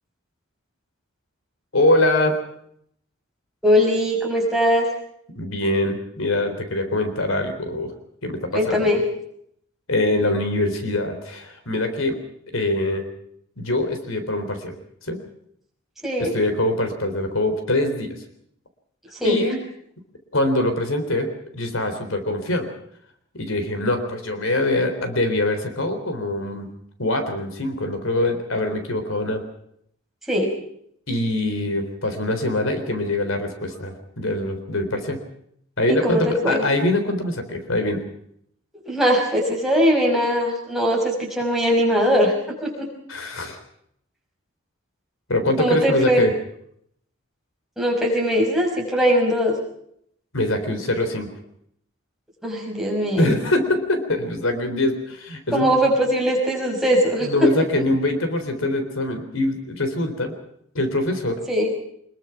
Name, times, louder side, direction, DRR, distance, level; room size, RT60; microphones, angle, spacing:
voice 1, 1.7-2.4 5.4-7.9 8.2-8.9 9.9-12.2 12.5-13.0 13.6-14.8 15.0-15.2 16.2-18.1 19.2-19.6 20.3-21.3 21.5-22.7 23.3-26.7 27.0-29.4 31.1-35.2 35.8-38.0 43.1-43.6 45.3-46.3 50.3-51.3 53.2-55.9 57.2-60.3 60.7-61.4, left 1 dB, 80° left, 8 dB, 3.9 m, -23 dB
voice 2, 3.6-4.9 8.5-9.0 16.0-16.3 19.2-19.4 30.3-30.5 35.9-36.6 38.9-42.9 45.6-46.3 47.8-49.5 52.4-53.3 55.5-57.8 61.5-61.7, equal, ahead, -2 dB, 5.8 m, -20 dB
24.5 x 22.0 x 5.9 m, 0.69 s
head